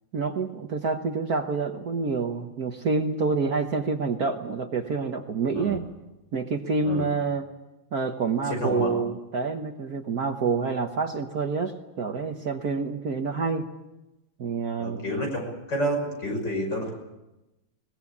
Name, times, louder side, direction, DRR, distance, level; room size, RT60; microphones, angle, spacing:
voice 1, 0.1-5.8 6.3-7.5 7.9-13.6 14.4-15.0, right 4 dB, 50° right, 5 dB, 1.5 m, -27 dB
voice 2, 8.5-8.9 14.8-15.4 15.7-16.9, equal, 50° left, 2 dB, 6.7 m, -29 dB
22.0 x 20.5 x 8.5 m, 1.0 s
omnidirectional pair, 2.4 m